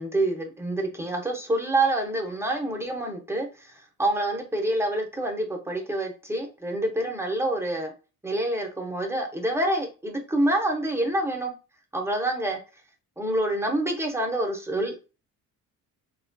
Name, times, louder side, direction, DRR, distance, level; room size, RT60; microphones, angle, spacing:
voice 1, 0.0-3.7 4.0-7.9 8.2-11.5 11.9-12.6 13.2-14.9, right 1 dB, 5° right, 2 dB, 0.6 m, -27 dB
2.9 x 2.3 x 2.5 m, 0.33 s
cardioid pair, 85°, 36 cm